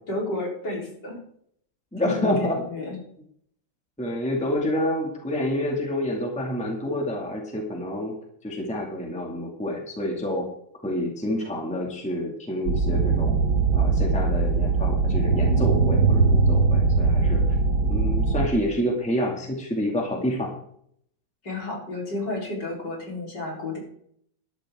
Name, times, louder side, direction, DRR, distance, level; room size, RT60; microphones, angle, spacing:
voice 1, 0.1-1.2 2.0-3.0 21.4-23.8, left 2 dB, 50° left, -2 dB, 4.6 m, -31 dB
voice 2, 1.9-2.6 4.0-8.1 8.4-10.5 10.8-13.4 13.7-17.4 17.9-20.5, left 1 dB, 5° left, 0 dB, 2.1 m, -28 dB
sound 1, 12.7-18.5, right 4 dB, 55° right, 1.7 m, -21 dB
14.0 x 12.0 x 3.7 m, 0.67 s
omnidirectional pair, 2.4 m